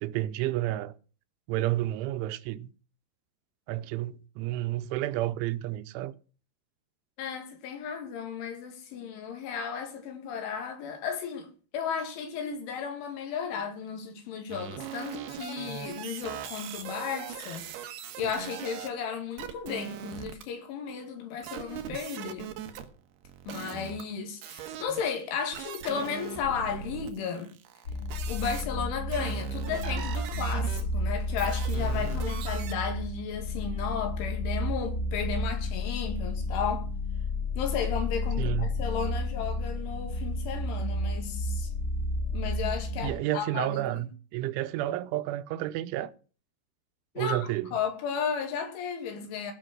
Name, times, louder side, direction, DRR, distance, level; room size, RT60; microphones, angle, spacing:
voice 1, 0.0-0.9 1.5-2.7 3.7-6.1 38.4-38.8 43.0-46.1 47.2-47.7, right 15 dB, 85° right, 3.2 m, -31 dB
voice 2, 7.2-11.5 11.7-17.7 18.2-22.5 23.5-27.5 28.3-36.9 37.6-41.7 42.3-44.1 47.2-49.5, left 7 dB, 90° left, 4.8 m, -34 dB
sound 1, 14.5-18.9 19.4-20.4 21.4-24.0 24.4-25.1 25.5-28.6 29.1-32.7, right 9 dB, 70° right, 2.9 m, -40 dB
sound 2, 27.9-43.1, left 1 dB, 30° left, 3.5 m, -31 dB
16.0 x 6.6 x 6.3 m
omnidirectional pair, 5.3 m